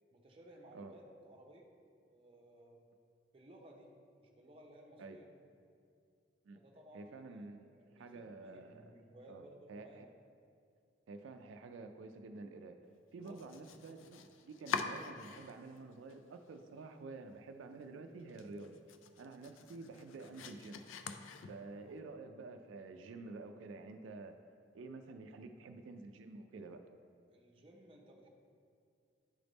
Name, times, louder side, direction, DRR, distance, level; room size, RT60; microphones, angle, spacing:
voice 1, 0.1-1.6 2.1-2.8 3.3-3.9 4.2-5.3 6.5-10.0 13.2-13.7 21.8-22.0 27.3-28.3, right 1 dB, 30° right, -1 dB, 0.7 m, -59 dB
voice 2, 6.9-7.7 7.9-8.9 9.3-9.4 9.7-10.1 11.1-12.8 13.1-18.8 19.2-20.8 21.4-24.4 24.7-26.8, right 3 dB, 85° right, 6 dB, 0.3 m, -49 dB
Domestic sounds home sounds, 13.2-15.8 16.1-16.8 17.2-17.3 17.7-17.8 18.2-21.9, left 6 dB, 90° left, 0.4 m, -45 dB
9.6 x 3.4 x 3.9 m, 2.4 s
head